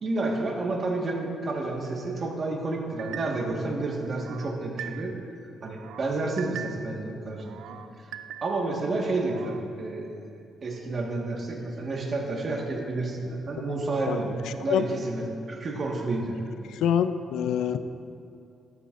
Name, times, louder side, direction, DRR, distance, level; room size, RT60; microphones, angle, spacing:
voice 1, 0.0-5.1 5.6-7.6 8.4-10.2 10.6-14.3 14.6-15.2 15.5-16.4, right 2 dB, 45° right, 0 dB, 1.5 m, -30 dB
sound 1, 3.0-3.6 4.0-5.3 5.7-7.0 7.4-8.7 9.1-9.6, right 9 dB, 80° right, 0.3 m, -42 dB
voice 2, 16.7-17.8, left 9 dB, 80° left, 11 dB, 0.4 m, -25 dB
14.0 x 9.9 x 2.5 m, 2.5 s
cardioid pair, 90°, 0 cm